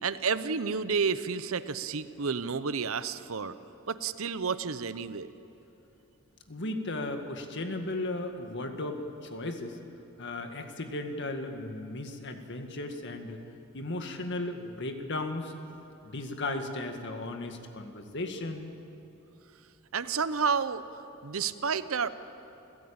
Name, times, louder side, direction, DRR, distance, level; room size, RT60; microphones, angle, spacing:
voice 1, 0.0-3.5 3.9-5.3 19.9-20.8 21.2-22.1, right 5 dB, 70° right, 13 dB, 0.8 m, -30 dB
voice 2, 6.5-9.8 10.2-13.4 13.7-15.5 16.0-18.7, left 2 dB, 55° left, 5 dB, 1.9 m, -35 dB
29.0 x 16.5 x 8.8 m, 2.9 s
head